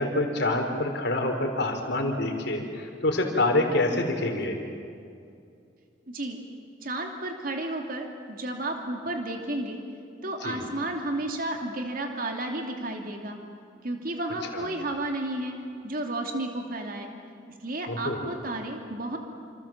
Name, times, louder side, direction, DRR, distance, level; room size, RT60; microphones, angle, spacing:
voice 1, 0.0-4.6 10.4-10.6 14.5-14.7 17.9-18.2, left 2 dB, 60° left, 4 dB, 4.0 m, -26 dB
voice 2, 6.1-6.4 6.8-9.8 10.2-13.4 13.8-15.5 15.8-17.1 17.6-19.2, right 2 dB, 50° right, 3 dB, 2.9 m, -32 dB
27.5 x 27.0 x 7.5 m, 2.4 s
head